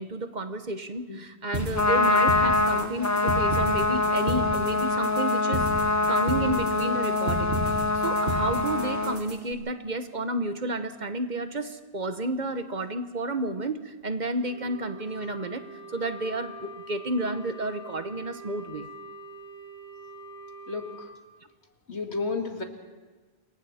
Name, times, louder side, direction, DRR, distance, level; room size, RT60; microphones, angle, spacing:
voice 1, 0.0-15.7 15.9-18.9, right 2 dB, 45° right, 9 dB, 1.1 m, -31 dB
sound 1, 1.5-9.5, equal, 70° right, 3.7 m, -33 dB
Trumpet, 1.6-9.2, left 2 dB, 15° left, 1.0 m, -25 dB
Wind instrument woodwind instrument, 14.4-21.1, right 2 dB, 85° right, 4.2 m, -44 dB
voice 2, 20.7-21.1 21.9-22.6, left 4 dB, 90° left, 4 dB, 2.2 m, -32 dB
27.5 x 22.5 x 4.2 m, 1.4 s
omnidirectional pair, 1.1 m